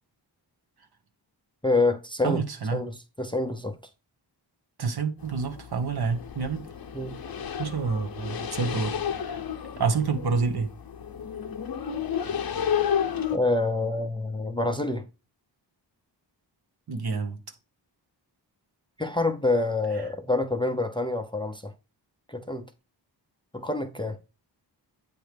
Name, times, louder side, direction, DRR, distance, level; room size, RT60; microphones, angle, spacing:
voice 1, 1.6-2.4 2.7-3.8 6.9-7.1 13.3-15.0 19.0-21.7 22.3-22.6 23.5-24.2, left 2 dB, 10° left, 0.6 m, -27 dB
voice 2, 2.2-2.8 4.8-6.6 7.6-9.4 9.8-10.7 16.9-17.4, right 5 dB, 60° right, 1.2 m, -28 dB
sound 1, 5.2-13.4, left 8 dB, 55° left, 0.8 m, -32 dB
8.7 x 3.2 x 5.1 m
wide cardioid pair, 160°, 43 cm